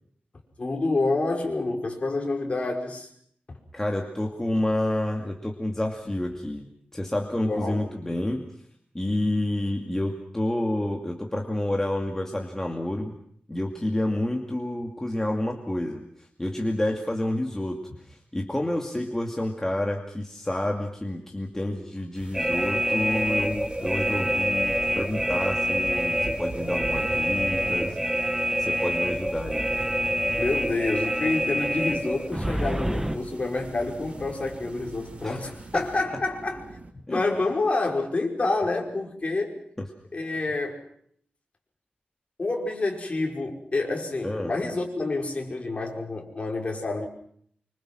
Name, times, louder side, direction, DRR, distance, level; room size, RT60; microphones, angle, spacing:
voice 1, 0.6-3.1 7.5-7.8 21.5-22.0 30.4-36.6 37.1-39.6 40.1-40.9 42.4-47.1, left 2 dB, 35° left, 1 dB, 5.6 m, -28 dB
voice 2, 3.7-6.7 6.9-8.5 8.9-13.1 13.5-16.0 16.4-17.8 18.1-28.0 28.6-29.7 35.2-35.4 35.7-35.9 37.1-37.2 44.2-44.5, left 1 dB, 15° left, 1 dB, 2.4 m, -29 dB
sound 1, 22.1-36.0, right 2 dB, 30° right, 4.6 m, -42 dB
sound 2, 22.3-33.2, equal, 10° right, 1.4 m, -26 dB
sound 3, 24.5-36.9, right 3 dB, 50° right, 2.8 m, -47 dB
26.5 x 25.0 x 6.3 m, 0.65 s
wide cardioid pair, 140°, 3 cm